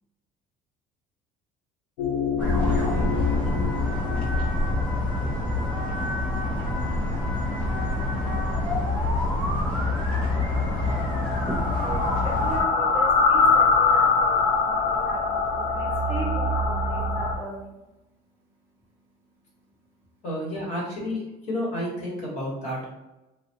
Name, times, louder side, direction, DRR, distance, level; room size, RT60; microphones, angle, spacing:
sound 1, 2.0-17.4, left 4 dB, 65° left, 0.5 m, -26 dB
sound 2, 2.4-12.6, left 2 dB, 5° left, 0.9 m, -26 dB
voice 1, 9.7-20.2, right 1 dB, 15° right, -5 dB, 0.4 m, -40 dB
voice 2, 20.2-22.9, left 1 dB, 45° left, -5 dB, 1.2 m, -30 dB
3.3 x 2.3 x 2.8 m, 0.98 s
cardioid pair, 170°, 17 cm